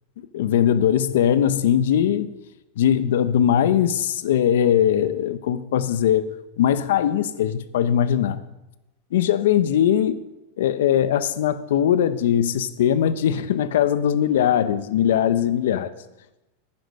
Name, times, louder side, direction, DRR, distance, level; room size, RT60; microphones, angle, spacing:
voice 1, 0.3-2.3 2.8-6.2 6.6-8.4 9.1-10.2 10.6-15.9, left 10 dB, 85° left, 0.7 m, -20 dB
10.5 x 9.9 x 5.5 m
supercardioid pair, 165°, 0 cm